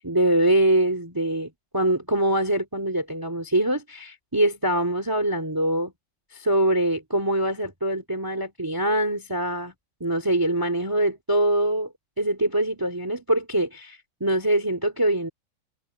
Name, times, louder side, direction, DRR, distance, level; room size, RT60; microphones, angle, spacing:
voice 1, 0.0-5.9 6.3-9.7 10.0-15.3, right 1 dB, 10° right, 1.4 m, -24 dB
omnidirectional pair, 5.0 m